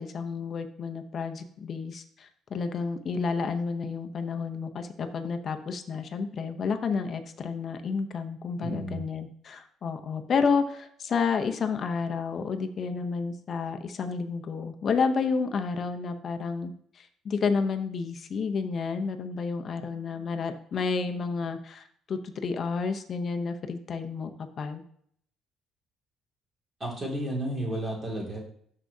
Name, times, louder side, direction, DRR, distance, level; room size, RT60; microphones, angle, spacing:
voice 1, 0.0-24.3 24.6-24.8, left 5 dB, 35° left, 7 dB, 0.6 m, -30 dB
voice 2, 8.6-9.0 26.8-28.4, right 1 dB, 20° right, -1 dB, 2.1 m, -32 dB
12.5 x 4.6 x 2.7 m, 0.63 s
cardioid pair, 150°, 0 cm